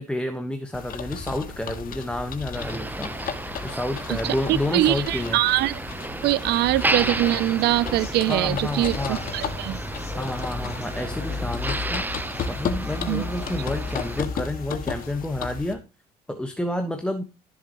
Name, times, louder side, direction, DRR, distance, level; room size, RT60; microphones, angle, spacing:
voice 1, 0.0-3.1 3.6-5.4 8.2-9.2 10.2-12.1 12.5-15.8 16.3-17.3, left 1 dB, 5° left, 1.3 m, -29 dB
sound 1, 0.7-15.7, left 6 dB, 55° left, 1.9 m, -34 dB
Motor vehicle (road), 2.5-14.2, right 2 dB, 10° right, 0.8 m, -33 dB
voice 2, 4.1-5.8 6.2-9.8 13.1-13.2, right 15 dB, 75° right, 0.6 m, -23 dB
sound 2, 7.1-15.1, left 5 dB, 35° left, 3.5 m, -44 dB
13.5 x 7.4 x 3.0 m
cardioid pair, 110°, 17 cm